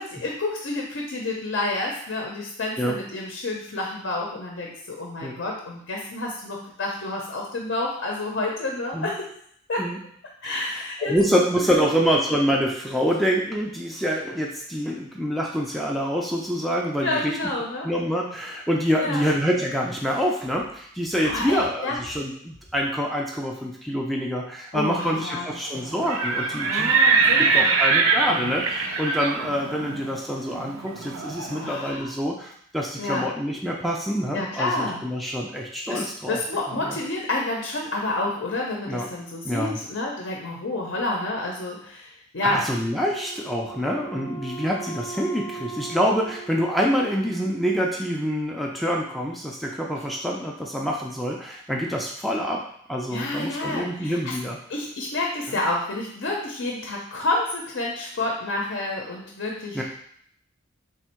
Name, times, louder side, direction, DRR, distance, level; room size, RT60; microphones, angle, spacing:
voice 1, 0.0-9.3 9.7-9.9 10.4-11.4 11.7-11.9 17.0-17.9 19.0-19.2 21.2-22.0 24.7-25.9 26.6-27.8 31.5-32.1 33.0-33.3 34.3-35.0 35.9-42.7 53.1-54.4 54.7-59.8, left 2 dB, 65° left, -1 dB, 0.6 m, -29 dB
voice 2, 10.4-17.4 17.8-27.0 27.4-36.4 36.7-37.0 38.9-39.1 39.4-39.8 42.4-52.6 52.9-54.6 55.5-55.6 59.7-59.8, equal, ahead, -2 dB, 0.3 m, -26 dB
Livestock farm animals working animals, 25.9-31.8, right 4 dB, 80° right, 0.5 m, -23 dB
Wind instrument woodwind instrument, 43.1-47.6, right 4 dB, 25° left, 0.7 m, -39 dB
3.5 x 2.6 x 4.3 m, 0.66 s
head